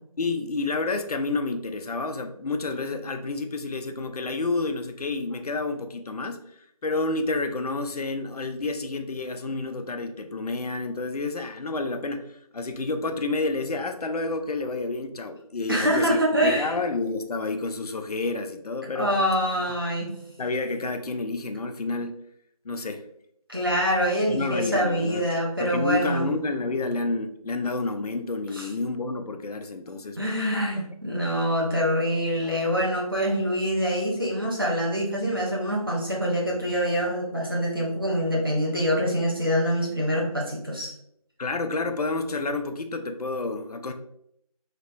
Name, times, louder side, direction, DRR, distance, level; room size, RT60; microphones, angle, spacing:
voice 1, 0.2-6.5 6.8-19.1 20.4-22.2 22.6-23.0 24.3-25.3 25.6-30.2 41.4-43.9, left 3 dB, 85° left, 7 dB, 0.4 m, -29 dB
voice 2, 15.7-16.7 18.9-20.1 23.5-26.3 28.5-28.7 30.2-40.9, equal, 35° right, -3 dB, 0.6 m, -25 dB
3.0 x 2.0 x 2.6 m, 0.74 s
figure-of-eight pair, 175°, 19 cm